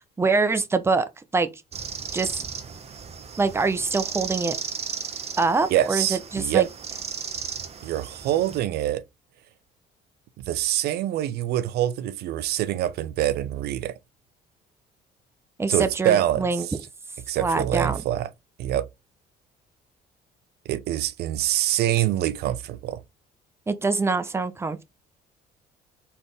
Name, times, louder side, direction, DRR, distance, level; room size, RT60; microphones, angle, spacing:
voice 1, 0.2-1.1 1.3-1.5 2.1-2.4 3.4-4.6 5.4-6.7 15.6-16.7 17.4-18.0 23.7-24.8, right 4 dB, 15° right, 0.6 m, -24 dB
sound 1, 1.7-8.6, right 6 dB, 40° right, 0.9 m, -35 dB
voice 2, 5.7-6.7 7.8-9.0 10.4-13.9 15.7-16.8 17.3-18.3 18.6-18.9 20.7-23.0, right 12 dB, 70° right, 0.5 m, -25 dB
4.1 x 3.7 x 3.3 m
cardioid pair, 110°, 17 cm